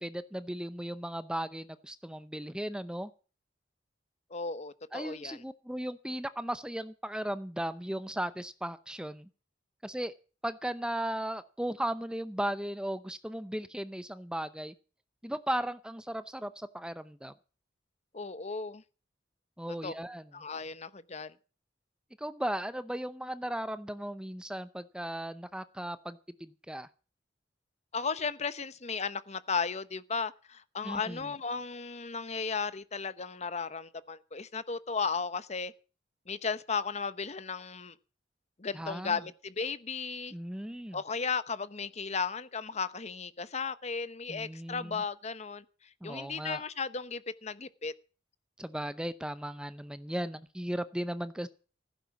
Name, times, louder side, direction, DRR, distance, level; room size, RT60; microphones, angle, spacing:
voice 1, 0.0-3.1 4.9-9.3 9.8-10.1 10.4-14.7 15.2-17.3 19.6-20.3 22.2-26.9 30.8-31.3 38.7-39.2 40.3-41.0 44.3-45.0 46.0-46.6 48.6-51.5, right 1 dB, 5° right, 0.6 m, -36 dB
voice 2, 4.3-5.4 18.1-18.8 19.7-19.9 20.3-21.3 27.9-35.7 36.3-37.9 38.6-40.3 40.9-45.6 46.0-47.9, left 5 dB, 40° left, 0.9 m, -35 dB
15.5 x 9.2 x 7.1 m
head